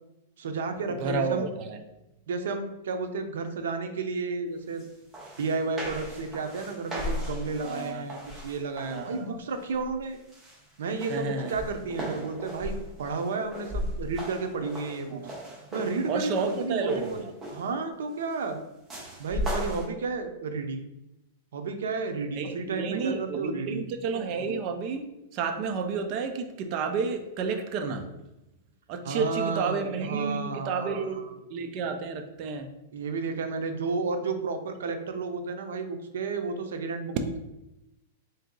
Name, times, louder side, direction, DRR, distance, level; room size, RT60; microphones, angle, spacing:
voice 1, 0.4-1.5 2.3-4.8 5.4-10.2 10.8-15.2 15.7-17.2 17.5-18.6 19.2-20.8 21.5-23.9 29.0-31.3 32.9-37.4, right 4 dB, 85° right, 6 dB, 0.6 m, -32 dB
voice 2, 1.0-1.8 7.6-8.2 8.9-9.3 11.1-11.6 15.1-15.6 16.1-17.2 22.4-25.1 25.3-28.1 28.9-31.2 31.5-32.7, right 5 dB, 35° right, 6 dB, 0.4 m, -31 dB
sound 1, 4.8-4.9 5.1-9.2 9.6-10.0 10.3-17.8 18.9-19.9, equal, 15° right, 0.8 m, -37 dB
3.8 x 2.7 x 3.7 m, 0.91 s
supercardioid pair, 165°, 0 cm